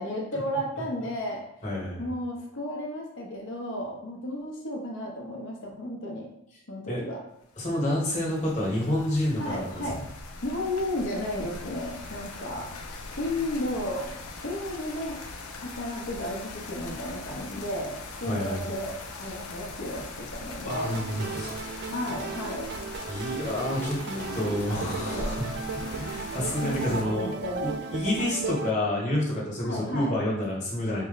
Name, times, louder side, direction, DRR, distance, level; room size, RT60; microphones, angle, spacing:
voice 1, 0.0-1.4 2.0-6.3 6.7-7.2 9.4-10.0 10.4-12.7 13.2-14.1 14.4-15.2 15.6-18.9 19.2-21.0 21.9-22.7 24.0-24.5 25.0-25.3 26.1-27.7 29.6-30.1, left 1 dB, 55° left, 0 dB, 0.8 m, -33 dB
voice 2, 1.6-2.1 6.9-7.0 7.6-9.4 9.9-10.0 18.2-18.7 20.6-21.6 23.1-24.0 24.3-25.4 26.0-27.3 27.9-31.0, left 1 dB, 35° left, -5 dB, 1.3 m, -28 dB
sound 1, 7.5-27.0, left 3 dB, 85° left, 0.5 m, -41 dB
sound 2, 20.7-28.7, right 4 dB, 50° right, 0.3 m, -36 dB
4.2 x 2.1 x 3.9 m, 0.79 s
head